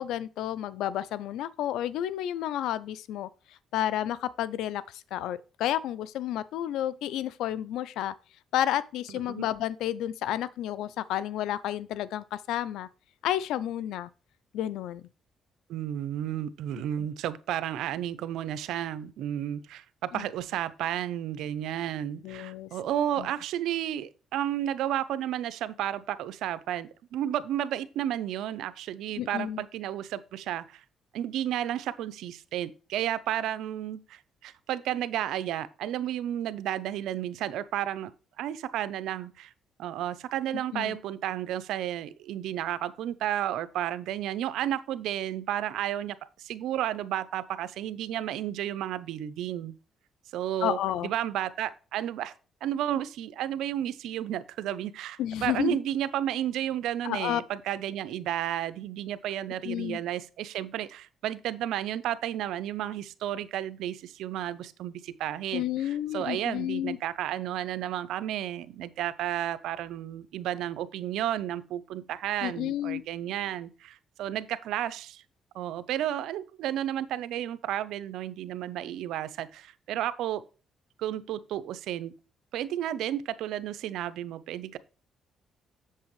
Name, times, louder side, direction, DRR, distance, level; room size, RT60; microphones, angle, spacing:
voice 1, 0.0-3.3 3.7-8.1 8.5-12.9 13.2-14.1 14.5-15.0 20.1-20.2 22.2-22.7 23.2-23.3 29.2-29.6 40.7-41.0 50.6-51.1 55.2-55.8 57.0-57.4 59.6-60.0 65.5-67.0 72.4-73.0, left 12 dB, 90° left, 0.5 m, -31 dB
voice 2, 15.7-30.8 31.1-38.1 38.4-39.5 39.8-49.7 50.3-52.3 52.6-75.2 75.5-80.4 81.0-82.1 82.5-84.8, right 11 dB, 85° right, 0.6 m, -32 dB
7.5 x 7.2 x 3.1 m
cardioid pair, 90°, 0 cm